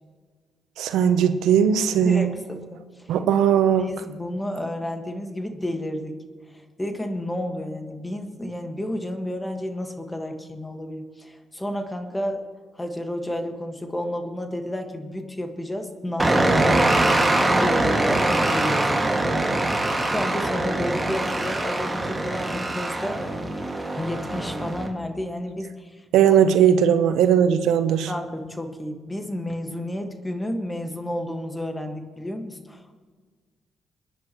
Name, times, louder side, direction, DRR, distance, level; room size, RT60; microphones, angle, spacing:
voice 1, 0.8-2.3 3.1-4.0 26.1-28.1, right 8 dB, 85° right, 10 dB, 0.7 m, -18 dB
voice 2, 2.0-3.2 3.8-6.2 6.5-12.4 12.7-23.2 23.9-26.3 28.1-33.0, left 1 dB, 10° left, 5 dB, 1.6 m, -31 dB
sound 1, 16.2-24.9, right 2 dB, 15° right, 2.0 m, -23 dB
28.0 x 10.0 x 3.1 m, 1.5 s
cardioid pair, 90°, 0 cm